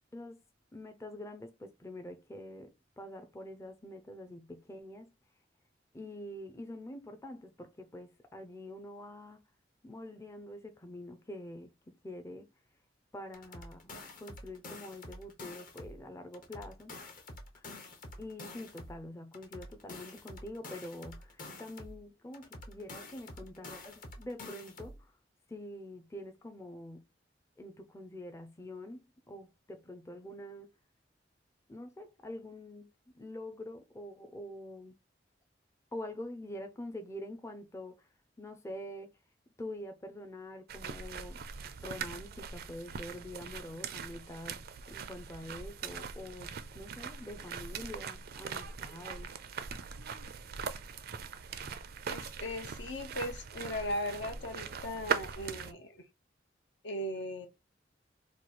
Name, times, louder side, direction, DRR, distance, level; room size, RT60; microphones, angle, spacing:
voice 1, 0.1-0.4 0.7-5.1 5.9-9.4 9.8-12.5 13.1-17.0 17.5-17.7 18.2-25.1 25.5-27.0 27.6-30.7 31.7-32.9 33.1-35.0 35.9-38.1 38.4-39.2 39.6-41.4 41.8-44.6 44.9-49.3, left 1 dB, 15° left, 0.4 m, -45 dB
sound 1, 13.3-16.0 16.3-19.0 19.3-22.0 22.3-25.0, left 2 dB, 50° left, 0.9 m, -48 dB
sound 2, 40.7-55.7, right 6 dB, 55° right, 0.4 m, -41 dB
voice 2, 52.1-56.0 56.8-57.5, left 1 dB, 75° left, 0.8 m, -38 dB
3.0 x 2.3 x 4.2 m
head